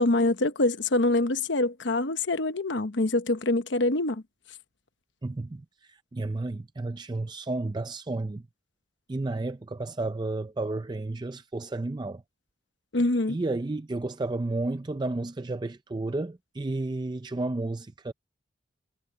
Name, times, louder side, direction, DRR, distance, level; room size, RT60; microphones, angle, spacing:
voice 1, 0.0-4.2 12.9-13.4, left 2 dB, 65° left, 1.0 m, -25 dB
voice 2, 5.2-8.5 9.1-12.2 13.3-18.1, right 2 dB, 20° right, 0.4 m, -32 dB
head